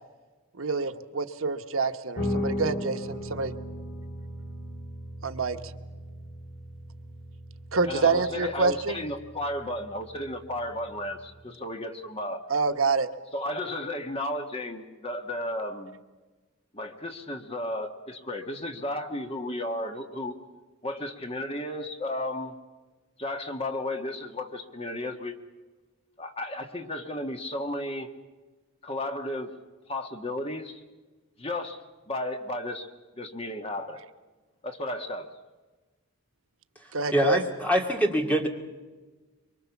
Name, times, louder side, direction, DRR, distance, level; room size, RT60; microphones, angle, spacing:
voice 1, 0.6-3.5 5.2-5.6 7.7-9.0 12.5-13.1 36.9-37.4, right 4 dB, 80° right, 8 dB, 1.1 m, -26 dB
Guitar, 2.1-11.4, equal, 60° left, 2.8 m, -37 dB
voice 2, 7.8-12.4 13.3-15.9 16.7-20.4 20.8-22.6 23.2-25.4 26.2-28.1 28.8-29.5 29.9-30.8 31.4-32.9 33.2-34.0 34.6-35.3, left 1 dB, 25° left, 5 dB, 1.5 m, -34 dB
voice 3, 37.1-38.5, equal, 5° left, 3 dB, 2.2 m, -24 dB
24.0 x 24.0 x 7.2 m, 1.3 s
head